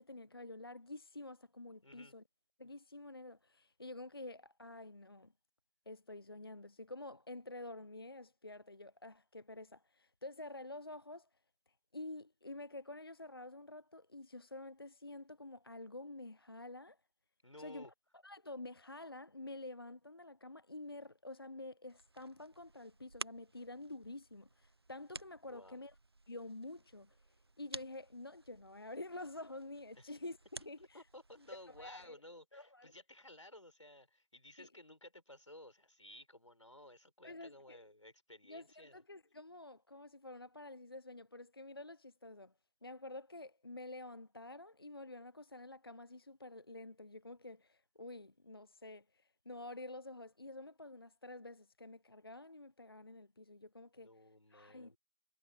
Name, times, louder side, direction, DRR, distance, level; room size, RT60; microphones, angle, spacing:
voice 1, 0.0-2.2 2.6-5.3 5.9-11.3 11.9-17.0 17.6-17.9 18.2-25.9 26.3-27.2 27.6-30.4 30.7-31.0 31.8-32.2 32.5-32.9 34.6-34.7 37.2-37.8 38.5-42.5 42.8-54.1 54.5-54.9, left 2 dB, 50° left, 0.4 m, -49 dB
voice 2, 1.8-2.1 17.4-17.9 25.5-25.8 30.0-30.1 30.8-39.0 54.0-55.0, left 1 dB, 85° left, 5.3 m, -56 dB
sound 1, 21.9-32.1, right 2 dB, 55° right, 0.4 m, -54 dB
figure-of-eight pair, 180°, 16 cm